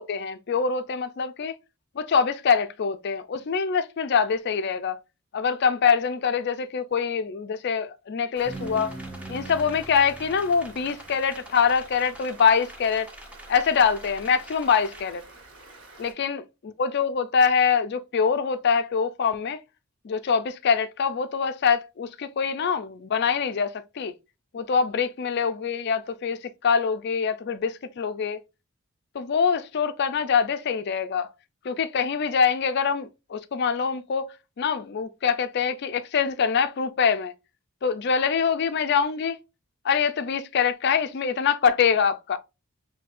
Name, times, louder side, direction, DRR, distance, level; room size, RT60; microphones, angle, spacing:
voice 1, 0.0-1.5 2.0-5.0 5.3-9.0 9.3-13.1 13.5-15.2 16.0-19.6 20.0-24.1 24.5-28.4 29.1-31.3 31.6-34.3 34.6-37.3 37.8-39.4 39.8-42.4, left 6 dB, 50° left, 0.4 m, -24 dB
sound 1, 8.4-15.0, right 1 dB, 5° right, 0.6 m, -42 dB
Stream, 8.4-16.1, right 2 dB, 60° right, 1.8 m, -49 dB
5.8 x 2.7 x 2.5 m
head